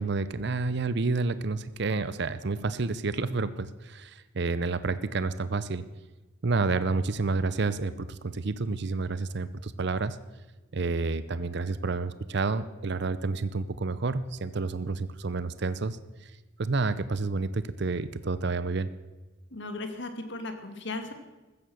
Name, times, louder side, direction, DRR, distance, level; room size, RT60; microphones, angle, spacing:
voice 1, 0.0-5.8 6.4-10.2 10.7-16.3 16.6-18.9, right 3 dB, 55° right, 14 dB, 0.6 m, -29 dB
voice 2, 19.5-21.1, left 2 dB, 60° left, 7 dB, 2.2 m, -36 dB
15.5 x 13.5 x 6.4 m, 1.2 s
head